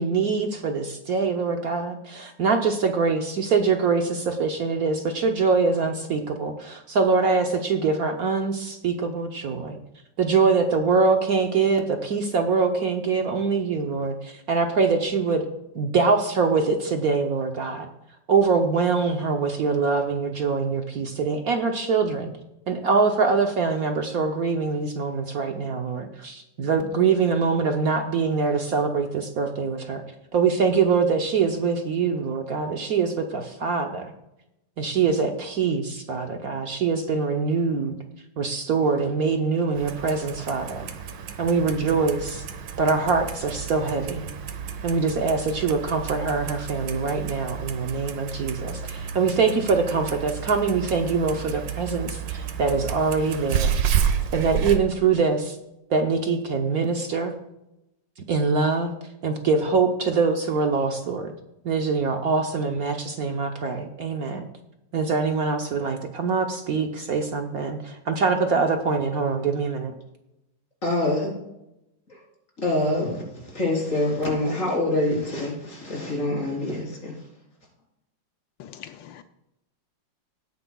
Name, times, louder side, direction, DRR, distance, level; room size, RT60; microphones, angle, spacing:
voice 1, 0.0-9.8 10.2-15.4 15.7-17.9 18.3-22.3 22.7-30.0 30.3-34.1 34.8-38.0 38.4-40.9 41.4-42.4 42.8-44.3 44.8-53.8 54.3-55.5 55.9-57.3 58.3-58.9 59.2-61.3 61.6-64.5 64.9-69.9, right 4 dB, 60° right, 4 dB, 1.2 m, -24 dB
Clock, 39.7-54.8, right 8 dB, 75° right, 1.6 m, -31 dB
voice 2, 70.8-71.4 72.1-72.2 72.6-77.3, left 1 dB, 40° left, -2 dB, 4.3 m, -26 dB
voice 3, 78.6-79.2, left 10 dB, 85° left, 8 dB, 1.3 m, -43 dB
18.0 x 9.5 x 2.3 m, 0.86 s
omnidirectional pair, 2.0 m